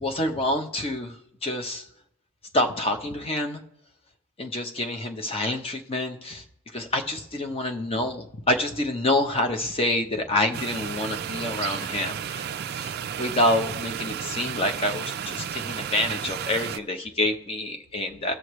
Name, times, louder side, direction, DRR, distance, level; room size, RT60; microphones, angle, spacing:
voice 1, 0.0-1.1 1.4-1.9 2.5-3.6 4.4-6.4 6.7-18.3, left 1 dB, 25° left, 4 dB, 0.8 m, -27 dB
sound 1, 10.5-16.8, right 8 dB, 45° right, 0.3 m, -33 dB
18.0 x 6.4 x 3.1 m, 0.77 s
head